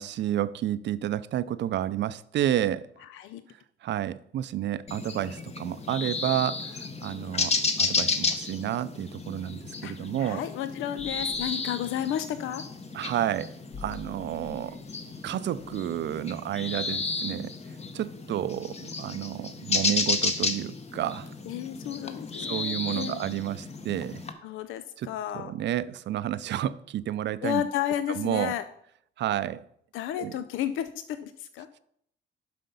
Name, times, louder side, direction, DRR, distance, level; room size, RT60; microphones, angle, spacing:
voice 1, 0.0-2.9 3.8-10.4 12.9-14.8 15.2-17.5 17.9-21.3 22.4-24.2 25.0-25.1 25.4-27.6 28.2-28.5 29.2-29.7 30.2-30.4, right 12 dB, 65° right, 0.5 m, -30 dB
voice 2, 3.0-3.4 9.8-12.7 21.5-23.2 24.4-25.5 27.4-28.6 29.9-31.8, left 11 dB, 85° left, 0.5 m, -32 dB
sound 1, 4.9-24.3, left 4 dB, 30° left, 1.0 m, -32 dB
sound 2, 11.0-12.6 12.9-16.0, left 3 dB, 65° left, 1.1 m, -48 dB
7.6 x 5.7 x 5.3 m
cardioid pair, 90°, 20 cm